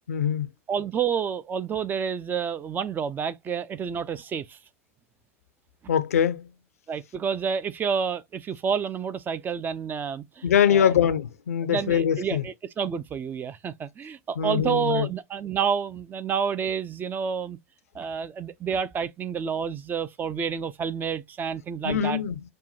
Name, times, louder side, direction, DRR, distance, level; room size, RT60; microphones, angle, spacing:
voice 1, 0.1-0.5 5.9-6.5 10.4-12.4 14.4-15.1 21.8-22.4, left 8 dB, 75° left, 0.5 m, -23 dB
voice 2, 0.7-4.6 6.9-10.9 11.7-17.6 17.9-22.2, right 7 dB, 25° right, 0.4 m, -29 dB
5.4 x 2.2 x 2.6 m
figure-of-eight pair, 90°, 8 cm